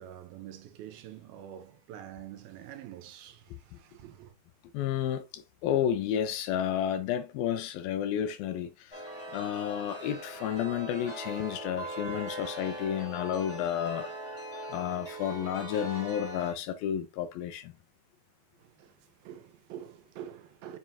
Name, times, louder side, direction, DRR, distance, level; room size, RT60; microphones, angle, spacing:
voice 1, 0.0-4.4 18.6-20.8, right 10 dB, 75° right, 2.6 m, -46 dB
voice 2, 4.7-9.1 9.3-14.1 14.7-17.7, left 10 dB, 80° left, 2.3 m, -31 dB
Chime, 8.9-16.5, right 1 dB, 20° left, 3.5 m, -40 dB
7.1 x 6.0 x 2.8 m
omnidirectional pair, 4.5 m